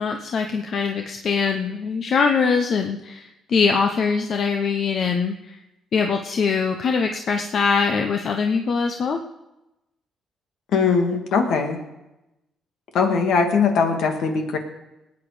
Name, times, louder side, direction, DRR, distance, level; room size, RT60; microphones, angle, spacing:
voice 1, 0.0-5.5 5.9-9.2, left 5 dB, 55° left, 4 dB, 1.0 m, -22 dB
voice 2, 10.7-11.8 12.9-14.6, left 5 dB, 75° left, 4 dB, 2.1 m, -20 dB
19.5 x 9.3 x 5.1 m, 0.95 s
cardioid pair, 90°, 0 cm